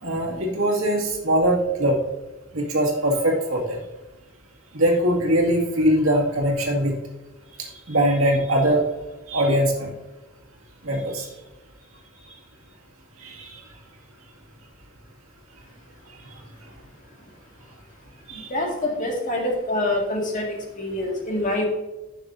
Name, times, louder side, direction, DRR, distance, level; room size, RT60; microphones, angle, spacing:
voice 1, 0.0-2.0 2.5-3.8 4.7-6.9 7.9-8.8 9.3-9.9 10.8-11.3 13.2-13.6 18.3-18.4, right 1 dB, 75° right, -1 dB, 2.2 m, -21 dB
voice 2, 18.3-21.6, left 1 dB, 40° left, 0 dB, 1.9 m, -26 dB
11.0 x 6.6 x 2.6 m, 1.1 s
head